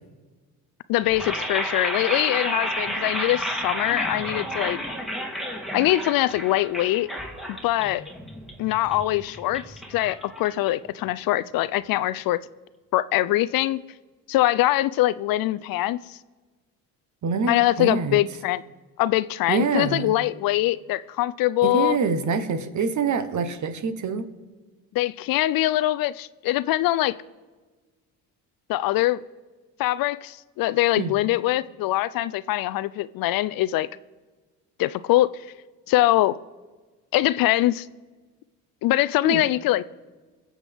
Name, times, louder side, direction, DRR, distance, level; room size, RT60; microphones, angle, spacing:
voice 1, 0.9-4.8 5.7-7.1 7.5-8.0 8.6-12.4 12.9-13.8 14.3-16.2 17.5-18.6 19.0-22.0 24.9-27.1 28.7-29.2 29.8-33.9 34.8-35.3 35.9-36.4 37.1-37.9 38.8-39.8, left 15 dB, 65° left, 0.5 m, -23 dB
sound 1, 1.0-11.1, equal, ahead, 1.8 m, -31 dB
voice 2, 17.2-18.2 19.5-20.1 21.6-24.3 31.0-31.1 39.2-39.4, right 5 dB, 50° right, 1.2 m, -25 dB
22.0 x 7.4 x 3.5 m
supercardioid pair, 80°, 38 cm